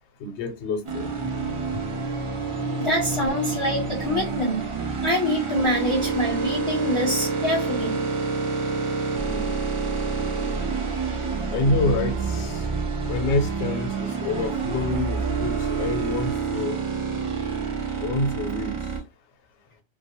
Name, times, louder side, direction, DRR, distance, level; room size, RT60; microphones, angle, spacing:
voice 1, 0.2-1.1 5.6-5.7 9.2-9.6 11.5-12.6 13.1-16.8 18.0-18.8, left 2 dB, 85° left, 0.9 m, -27 dB
sound 1, 0.9-19.0, right 5 dB, 45° right, 0.4 m, -28 dB
voice 2, 2.8-4.7 5.0-8.0, left 1 dB, 35° left, 0.7 m, -25 dB
2.1 x 2.1 x 2.8 m
omnidirectional pair, 1.1 m